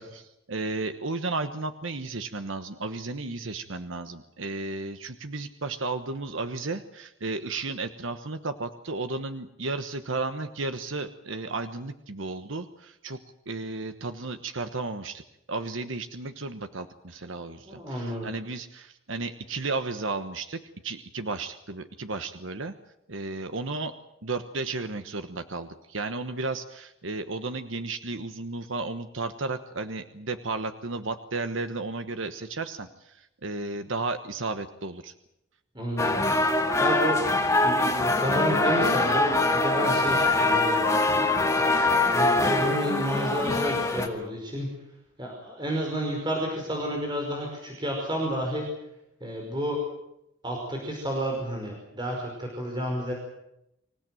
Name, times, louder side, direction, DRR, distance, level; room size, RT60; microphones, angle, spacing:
voice 1, 0.0-13.2 13.5-15.2 15.5-20.6 20.8-22.7 23.1-23.9 24.2-35.1, right 3 dB, 70° right, 9 dB, 1.2 m, -33 dB
voice 2, 17.7-18.3 35.7-36.1 36.8-37.2 37.6-40.9 41.5-44.7 45.2-48.7 49.2-49.8 50.4-53.1, equal, 20° right, 0 dB, 5.3 m, -30 dB
sound 1, 36.0-44.1, left 2 dB, 15° left, 2.1 m, -23 dB
26.0 x 16.5 x 9.1 m, 0.82 s
head